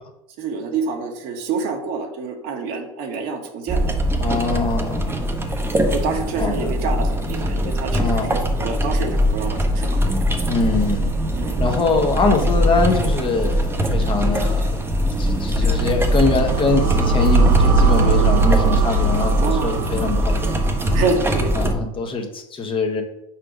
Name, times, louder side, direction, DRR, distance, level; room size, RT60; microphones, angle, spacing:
voice 1, 0.4-3.9 5.1-5.3 5.9-10.0 11.3-11.6 19.4-19.8 20.9-21.6, right 4 dB, 60° right, 3 dB, 1.4 m, -27 dB
sound 1, 3.7-21.7, equal, 15° right, 1.0 m, -21 dB
voice 2, 4.2-5.3 6.4-6.7 7.9-8.5 10.4-11.1 11.6-14.8 15.2-20.7 21.6-23.0, left 3 dB, 30° left, 4 dB, 1.2 m, -23 dB
sound 2, 15.5-21.7, right 7 dB, 75° right, 2.1 m, -22 dB
4.8 x 4.5 x 5.1 m, 0.83 s
hypercardioid pair, 85°, 17 cm